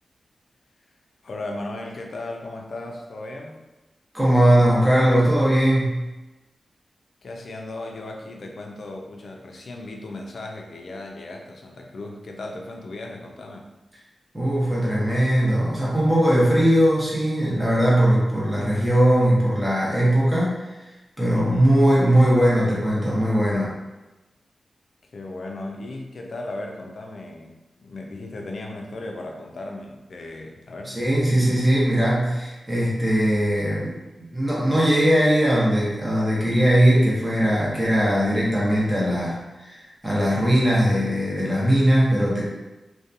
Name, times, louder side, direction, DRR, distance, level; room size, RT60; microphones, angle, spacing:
voice 1, 1.2-3.6 7.2-13.7 21.3-21.8 25.1-31.0, left 2 dB, 60° left, 1 dB, 0.4 m, -36 dB
voice 2, 4.1-6.1 14.3-20.9 21.2-23.7 30.8-42.5, equal, 10° right, -7 dB, 0.8 m, -20 dB
2.7 x 2.2 x 2.4 m, 1.1 s
wide cardioid pair, 125°, 0 cm